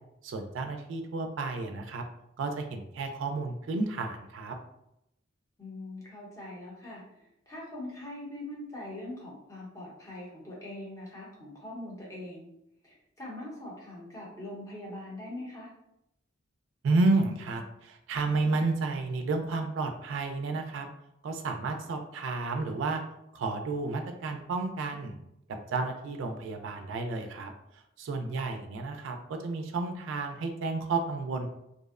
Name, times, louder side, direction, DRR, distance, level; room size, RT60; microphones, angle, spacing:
voice 1, 0.2-2.0 2.4-4.6 16.8-20.9 21.2-23.0 23.3-25.2 25.5-27.5 28.0-31.5, right 3 dB, 75° right, 6 dB, 0.3 m, -31 dB
voice 2, 5.6-12.5 12.8-15.7, left 1 dB, 15° left, -5 dB, 0.7 m, -42 dB
2.6 x 2.0 x 2.3 m, 0.81 s
head